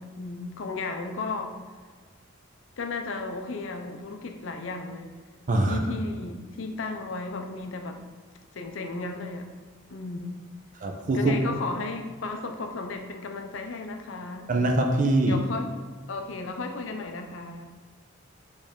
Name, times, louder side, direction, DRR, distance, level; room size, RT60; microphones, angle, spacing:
voice 1, 0.0-1.6 2.8-5.2 5.7-8.0 8.5-9.5 9.9-10.4 11.1-14.5 15.2-15.7 16.1-17.6, left 3 dB, 70° left, 5 dB, 0.5 m, -34 dB
voice 2, 5.5-5.8 10.8-11.4 14.5-15.4, right 2 dB, 40° right, 3 dB, 0.5 m, -23 dB
4.4 x 3.4 x 3.6 m, 1.5 s
head